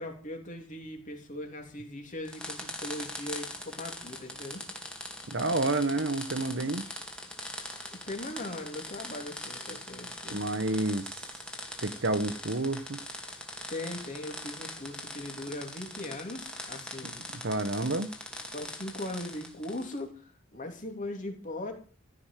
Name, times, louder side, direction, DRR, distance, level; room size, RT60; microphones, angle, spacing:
voice 1, 0.0-4.6 7.9-10.4 13.7-17.2 18.5-21.7, left 1 dB, 40° left, 3.1 m, -39 dB
sound 1, 2.3-20.0, left 1 dB, 5° left, 2.1 m, -42 dB
voice 2, 5.3-6.8 10.3-11.1 11.8-13.0 17.3-18.1, right 2 dB, 60° right, 1.1 m, -29 dB
14.5 x 6.2 x 9.1 m
head